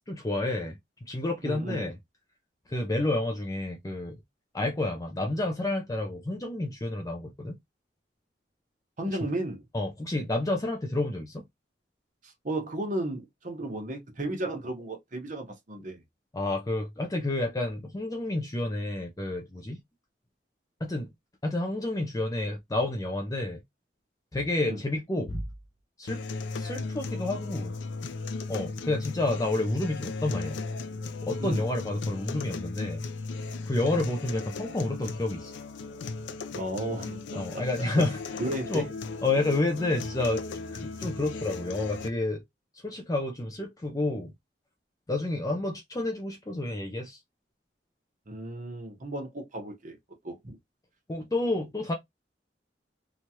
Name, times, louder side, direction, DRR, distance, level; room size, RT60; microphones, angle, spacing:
voice 1, 0.1-0.8 1.1-2.0 2.7-4.2 4.5-7.6 9.7-11.5 16.3-19.8 20.8-21.1 21.4-23.6 24.3-25.5 26.0-26.2 26.5-27.8 28.5-30.6 31.2-33.0 33.7-35.5 37.3-38.2 38.7-38.9 39.2-40.4 40.7-42.4 42.8-44.3 45.1-47.2 51.1-51.9, left 2 dB, 20° left, 0.5 m, -30 dB
voice 2, 1.4-1.9 9.0-9.6 12.2-16.0 24.6-24.8 31.4-31.7 36.5-37.6 38.0-38.1 38.4-38.9 48.3-50.0 50.2-50.6, right 1 dB, 45° right, 0.9 m, -34 dB
sound 1, 26.1-42.1, left 3 dB, 85° left, 0.4 m, -36 dB
3.0 x 2.3 x 2.7 m
head